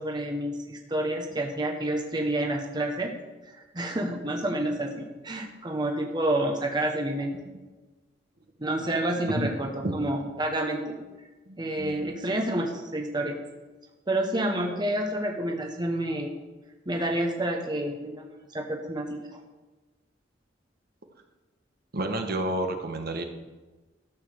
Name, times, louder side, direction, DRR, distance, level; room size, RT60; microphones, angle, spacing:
voice 1, 0.0-3.1 3.7-7.3 8.6-11.0 11.6-13.4 14.1-16.3 16.9-19.4, right 1 dB, 25° right, 2 dB, 1.2 m, -29 dB
voice 2, 11.5-12.2 21.9-23.2, right 1 dB, 55° right, 4 dB, 1.4 m, -30 dB
13.0 x 7.3 x 6.6 m, 1.2 s
head